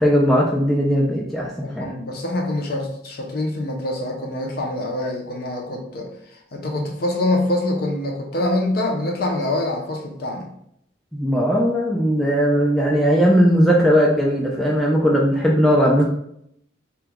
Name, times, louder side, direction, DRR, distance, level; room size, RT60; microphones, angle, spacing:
voice 1, 0.0-1.5 1.8-1.9 11.1-16.0, equal, ahead, -3 dB, 0.3 m, -18 dB
voice 2, 1.6-10.5, left 1 dB, 50° left, 1 dB, 0.5 m, -25 dB
2.9 x 2.2 x 3.5 m, 0.73 s
head